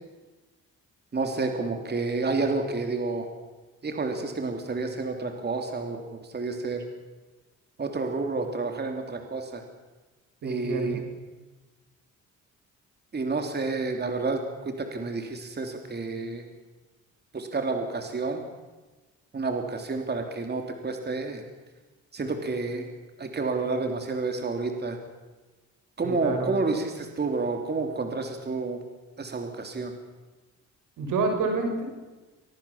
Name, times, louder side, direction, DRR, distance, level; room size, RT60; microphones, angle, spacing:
voice 1, 1.1-3.3 3.8-6.8 7.8-9.6 10.4-11.0 13.1-16.4 17.3-18.4 19.3-21.4 22.1-22.9 23.2-25.0 26.0-28.8 29.2-29.9, right 3 dB, 35° right, 5 dB, 3.3 m, -30 dB
voice 2, 10.4-11.0 26.0-26.5 31.0-31.8, right 3 dB, 85° right, 4 dB, 6.0 m, -28 dB
25.0 x 18.0 x 7.4 m, 1.2 s
cardioid pair, 90°, 30 cm